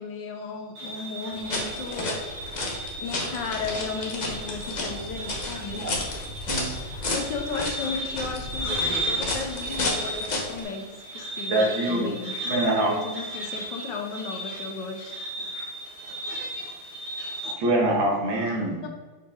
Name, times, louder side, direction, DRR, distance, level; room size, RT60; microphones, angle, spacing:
voice 1, 0.0-2.2 3.0-5.8 7.1-12.4 12.7-15.2 18.8-18.9, left 4 dB, 70° left, 3 dB, 1.4 m, -35 dB
sound 1, 0.7-17.5, right 1 dB, 55° right, 2.2 m, -35 dB
sound 2, 1.3-10.6, left 2 dB, 40° left, 0.6 m, -32 dB
voice 2, 11.5-12.1 12.4-12.9 17.6-18.8, right 1 dB, 80° right, -2 dB, 2.2 m, -24 dB
6.0 x 4.5 x 3.6 m, 1.3 s
omnidirectional pair, 2.1 m